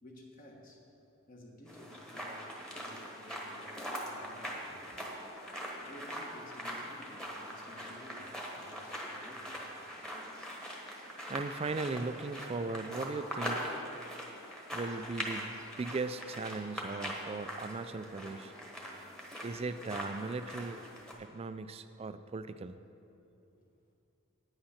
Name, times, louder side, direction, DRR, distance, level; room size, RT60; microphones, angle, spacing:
voice 1, 0.0-0.8 1.3-3.7 4.0-4.9 5.8-9.6 23.5-23.6, left 1 dB, 40° left, 0 dB, 1.3 m, -54 dB
sound 1, 1.7-21.1, equal, 5° left, 1.2 m, -42 dB
voice 2, 11.3-13.8 14.7-18.5 19.4-20.8 21.2-22.8, right 3 dB, 25° right, 11 dB, 0.3 m, -38 dB
9.9 x 8.8 x 5.7 m, 2.8 s
head